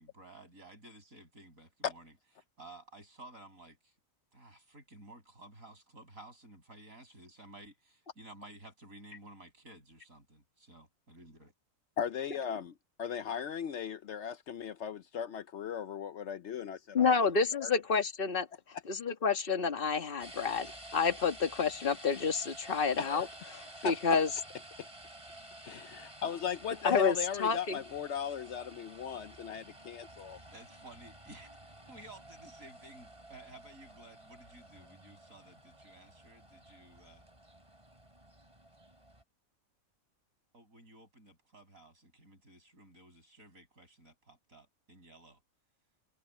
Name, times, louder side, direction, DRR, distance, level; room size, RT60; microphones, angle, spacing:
voice 1, 0.0-2.1 2.6-3.9 4.3-11.5 30.5-31.5 31.9-37.2 40.5-45.4, right 2 dB, 70° right, 7.1 m, -54 dB
voice 2, 12.0-17.1 17.6-17.7 23.0-24.2 25.6-30.4, left 8 dB, 60° left, 0.8 m, -37 dB
voice 3, 16.9-18.5 18.9-23.2 23.5-24.3 26.8-27.2 27.4-27.8, left 5 dB, 40° left, 1.7 m, -29 dB
sound 1, 20.2-39.2, right 1 dB, 20° right, 7.0 m, -52 dB
omnidirectional pair, 1.5 m